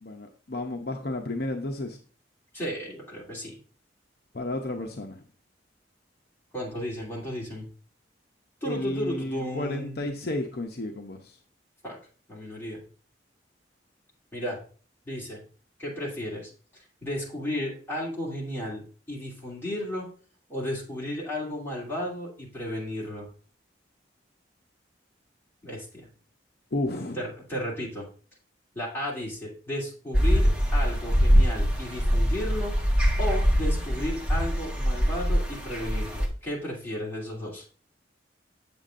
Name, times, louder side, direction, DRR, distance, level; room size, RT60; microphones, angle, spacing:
voice 1, 0.0-2.0 4.3-5.2 8.6-11.4 26.7-27.2, left 1 dB, 55° left, 3 dB, 0.7 m, -32 dB
voice 2, 2.5-3.6 6.5-7.6 8.6-10.2 11.8-12.0 12.3-12.8 14.3-14.6 15.0-15.4 15.8-16.5 17.0-20.1 20.5-23.3 25.6-26.1 27.2-28.1 28.7-32.7 33.2-37.6, left 1 dB, 15° left, -5 dB, 2.8 m, -34 dB
sound 1, 30.1-36.3, equal, 5° right, 1.4 m, -23 dB
8.1 x 7.0 x 2.5 m, 0.40 s
head